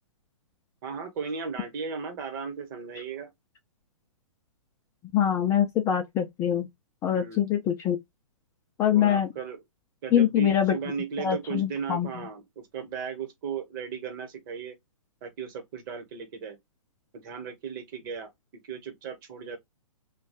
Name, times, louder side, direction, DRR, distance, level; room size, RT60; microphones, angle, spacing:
voice 1, 0.8-3.3 7.1-7.5 8.9-9.6 10.0-14.8 15.2-16.6 17.1-18.3 18.6-19.6, right 6 dB, 40° right, 1.0 m, -36 dB
voice 2, 5.1-6.7 7.0-8.0 8.8-9.3 10.1-10.8 11.2-12.1, left 10 dB, 15° left, 0.3 m, -24 dB
3.0 x 2.3 x 2.8 m
hypercardioid pair, 125°, 17 cm